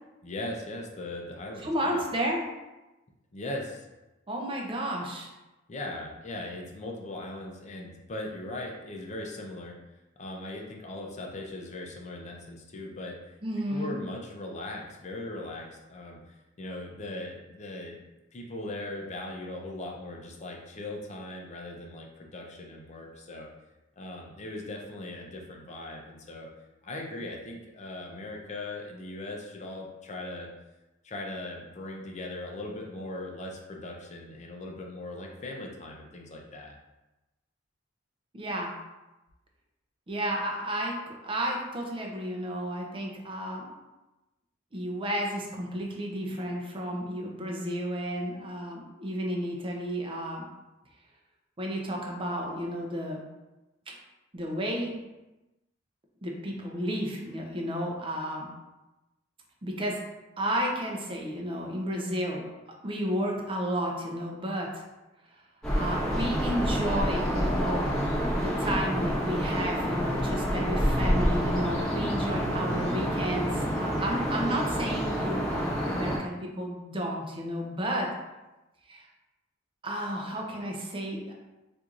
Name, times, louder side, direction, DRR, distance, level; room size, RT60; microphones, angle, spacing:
voice 1, 0.2-2.0 3.3-3.9 5.7-9.7 10.2-13.2 13.7-18.0 18.3-23.5 24.0-26.5 26.8-30.5 31.0-36.7, left 2 dB, 35° left, 1 dB, 0.5 m, -39 dB
voice 2, 1.6-2.5 4.3-5.3 13.4-13.9 38.3-38.7 40.1-43.8 44.7-50.5 51.6-53.2 53.9-54.0 54.3-54.9 56.2-58.5 59.6-60.0 60.4-62.6 62.8-64.8 65.8-67.9 68.3-78.1 78.9-79.1 79.8-81.3, equal, 25° right, 0 dB, 0.5 m, -32 dB
sound 1, 65.6-76.2, equal, 5° left, 1.1 m, -28 dB
4.4 x 2.5 x 2.5 m, 1.0 s
head